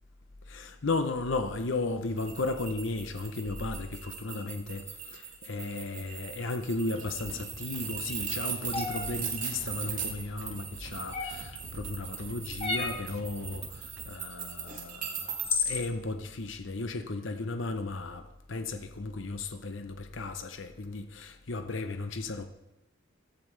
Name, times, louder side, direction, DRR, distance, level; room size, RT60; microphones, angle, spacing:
voice 1, 0.5-22.5, left 3 dB, 65° left, 0.8 m, -35 dB
sound 1, 2.2-15.5, right 7 dB, 40° right, 2.4 m, -39 dB
sound 2, 6.9-14.0, right 1 dB, 80° right, 1.9 m, -47 dB
sound 3, 8.7-9.1 11.1-11.6 12.6-13.1 14.7-14.8 15.4-15.9, left 4 dB, 30° left, 1.5 m, -31 dB
16.5 x 14.5 x 3.3 m
head